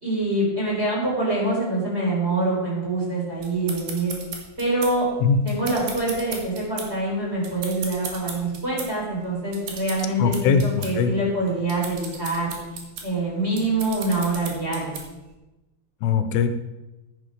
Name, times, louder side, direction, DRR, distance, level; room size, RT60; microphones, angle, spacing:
voice 1, 0.0-4.1 4.6-5.1 5.4-12.5 13.0-15.0, right 2 dB, 15° right, -5 dB, 3.8 m, -25 dB
sound 1, 3.4-15.3, right 5 dB, 60° right, 2.9 m, -37 dB
voice 2, 10.2-11.1 16.0-16.5, left 6 dB, 85° left, 8 dB, 2.9 m, -21 dB
11.0 x 9.6 x 5.1 m, 1.0 s
omnidirectional pair, 4.9 m